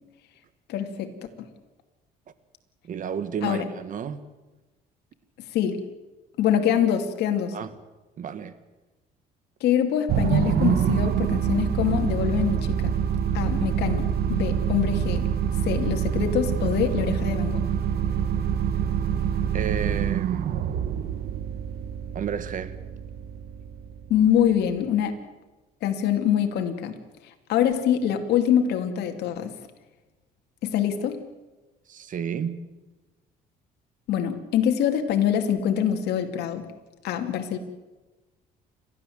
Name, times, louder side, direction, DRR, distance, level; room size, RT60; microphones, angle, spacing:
voice 1, 0.7-1.1 3.4-3.7 5.5-5.8 6.4-7.6 9.6-13.0 13.3-15.3 15.6-17.6 24.1-25.2 25.8-27.0 27.5-29.5 30.6-31.2 34.1-36.6 37.0-37.6, left 9 dB, 80° left, 2.6 m, -24 dB
voice 2, 2.8-4.2 7.5-7.8 8.2-8.6 19.5-20.6 22.1-22.8 31.9-32.6, right 7 dB, 50° right, 1.6 m, -32 dB
sound 1, 10.1-24.6, right 8 dB, 65° right, 1.5 m, -26 dB
29.5 x 13.0 x 7.9 m
cardioid pair, 110°, 17 cm